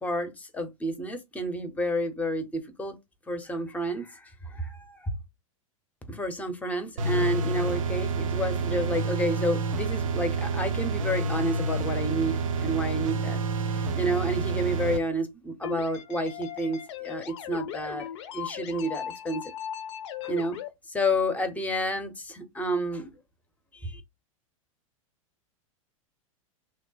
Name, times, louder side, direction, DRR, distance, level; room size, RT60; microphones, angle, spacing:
voice 1, 0.0-3.0 3.3-5.1 6.1-13.4 13.9-18.1 18.3-19.5 20.2-20.6 20.9-23.1 23.7-24.0, equal, 10° left, 0.7 m, -30 dB
sound 1, 7.0-15.0, right 3 dB, 65° right, 0.6 m, -28 dB
sound 2, 15.6-20.7, left 9 dB, 50° left, 0.5 m, -38 dB
3.1 x 2.2 x 4.0 m
figure-of-eight pair, 95°, 18 cm